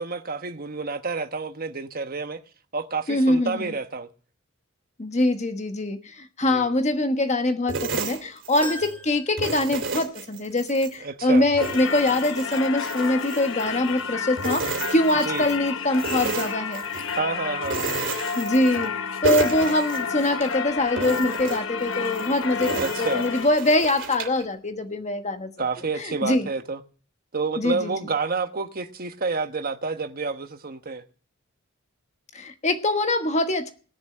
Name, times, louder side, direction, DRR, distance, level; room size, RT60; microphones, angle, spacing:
voice 1, 0.0-2.4 2.7-4.1 6.5-6.7 11.0-11.4 15.2-15.5 17.2-17.8 22.8-23.2 25.6-26.8 27.3-31.0, right 4 dB, 45° right, 1.2 m, -29 dB
voice 2, 3.1-3.7 5.0-16.8 18.3-18.9 19.2-25.5 26.0-26.5 27.6-27.9 32.3-33.7, left 1 dB, 35° left, 1.3 m, -23 dB
sound 1, 7.7-9.0 9.4-10.9 11.3-14.0 14.4-15.6 15.9-17.2 17.6-19.0 19.2-20.6 21.0-24.4, right 4 dB, 65° right, 2.8 m, -32 dB
sound 2, 8.6-10.2 10.7-10.8 12.0-12.1, left 1 dB, 10° left, 2.9 m, -40 dB
Singing / Church bell, 11.6-23.5, left 6 dB, 65° left, 1.1 m, -31 dB
19.0 x 7.2 x 7.7 m
head